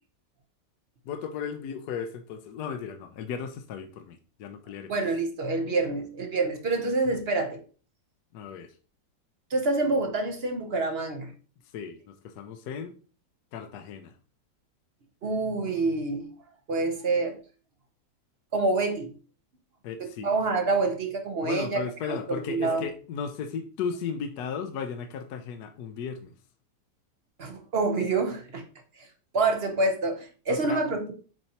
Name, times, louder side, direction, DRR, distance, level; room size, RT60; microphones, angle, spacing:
voice 1, 1.0-4.9 8.3-8.7 11.7-12.9 13.5-14.1 19.8-20.3 21.4-26.3 30.5-30.8, left 6 dB, 70° left, 1.2 m, -35 dB
voice 2, 4.9-7.6 9.5-11.3 15.2-16.3 16.7-17.4 18.5-19.1 20.0-22.9 27.4-28.6 29.3-31.1, right 3 dB, 45° right, 0.9 m, -27 dB
7.7 x 4.3 x 2.8 m
omnidirectional pair, 1.8 m